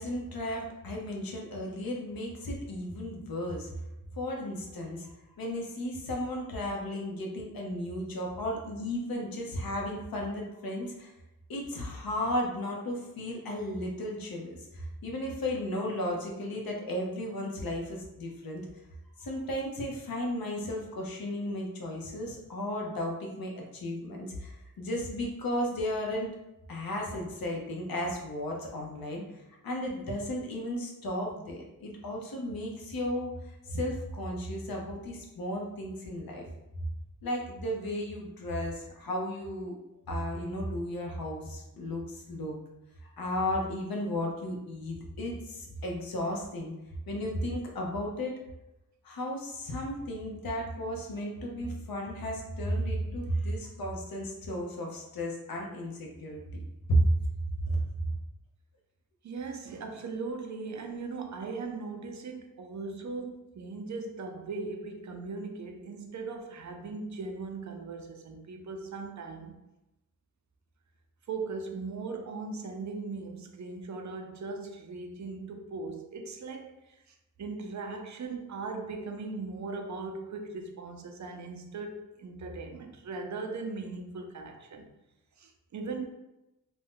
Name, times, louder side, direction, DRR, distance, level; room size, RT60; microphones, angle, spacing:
voice 1, 0.0-3.7 4.1-5.1 5.4-11.1 11.5-18.6 19.2-26.3 26.7-33.3 33.7-36.5 37.2-39.8 40.1-42.6 43.0-46.7 47.1-48.4 49.0-56.4 56.9-57.0 57.7-57.8, equal, 90° left, 0.7 m, -34 dB
voice 2, 59.2-69.6 71.3-84.9 85.4-86.1, right 4 dB, 55° right, 0.4 m, -39 dB
2.5 x 2.1 x 3.5 m
wide cardioid pair, 135°, 34 cm